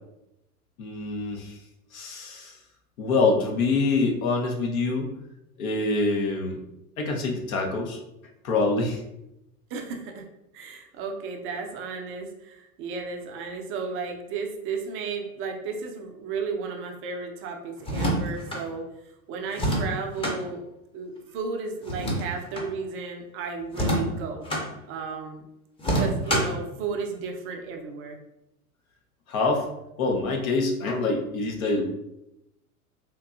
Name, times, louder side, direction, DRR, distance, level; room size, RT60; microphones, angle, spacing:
voice 1, 0.8-1.5 1.9-2.6 3.0-5.1 5.6-6.6 7.0-8.0 8.4-9.0 29.3-29.7 30.0-31.8, left 3 dB, 65° left, 1 dB, 0.8 m, -25 dB
voice 2, 9.7-10.3 10.5-18.9 19.3-20.6 20.9-24.5 24.9-25.4 26.0-28.2, right 4 dB, 30° right, 3 dB, 0.5 m, -33 dB
sound 1, 17.8-18.6 19.5-20.4 21.8-22.7 23.7-24.7 25.8-26.6, right 1 dB, 10° left, 0.7 m, -26 dB
3.6 x 2.9 x 2.4 m, 0.87 s
figure-of-eight pair, 90°, 44 cm